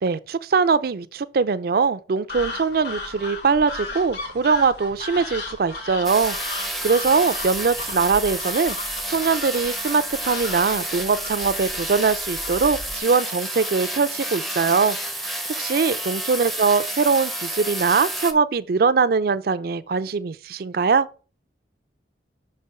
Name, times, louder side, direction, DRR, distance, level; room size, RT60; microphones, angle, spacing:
voice 1, 0.0-21.1, right 5 dB, 55° right, 0.4 m, -22 dB
sound 1, 2.3-13.0, left 3 dB, 70° left, 2.2 m, -36 dB
sound 2, 6.0-18.3, right 1 dB, ahead, 0.5 m, -30 dB
5.9 x 4.3 x 4.7 m
head